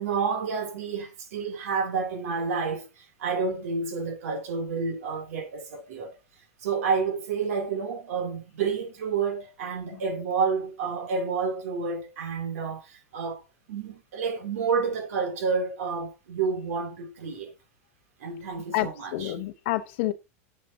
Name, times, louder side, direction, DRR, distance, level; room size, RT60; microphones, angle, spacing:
voice 1, 0.0-6.1 6.6-13.4 13.7-17.5 18.2-19.3, right 5 dB, 75° right, 2.9 m, -29 dB
voice 2, 18.7-20.1, left 15 dB, 50° left, 0.9 m, -28 dB
11.0 x 7.3 x 2.8 m
supercardioid pair, 165°, 8 cm